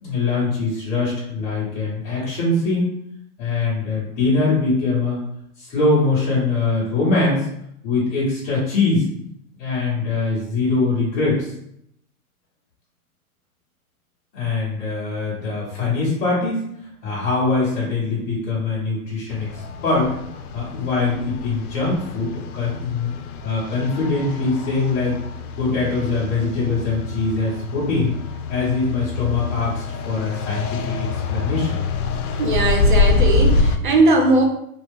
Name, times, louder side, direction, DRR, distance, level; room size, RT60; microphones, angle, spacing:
voice 1, 0.0-2.9 3.4-5.2 5.6-7.5 7.8-9.0 9.6-11.5 14.3-16.6 17.0-20.2 20.5-23.1 23.4-25.2 25.6-28.1 28.5-31.8, left 3 dB, 15° left, -10 dB, 1.3 m, -22 dB
sound 1, 19.3-33.8, left 4 dB, 80° left, 0.5 m, -25 dB
voice 2, 32.4-34.4, right 2 dB, 35° right, 3 dB, 0.4 m, -18 dB
2.9 x 2.4 x 3.4 m, 0.75 s
hypercardioid pair, 155°, 44 cm